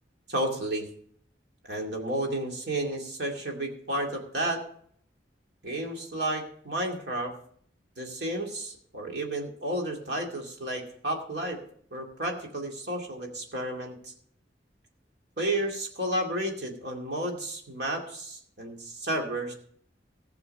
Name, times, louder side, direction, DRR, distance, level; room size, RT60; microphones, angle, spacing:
voice 1, 0.3-0.9 1.7-4.6 5.6-7.3 8.0-11.6 11.9-14.1 15.4-19.5, right 1 dB, 60° right, 1 dB, 2.4 m, -32 dB
16.0 x 6.8 x 5.3 m, 0.62 s
head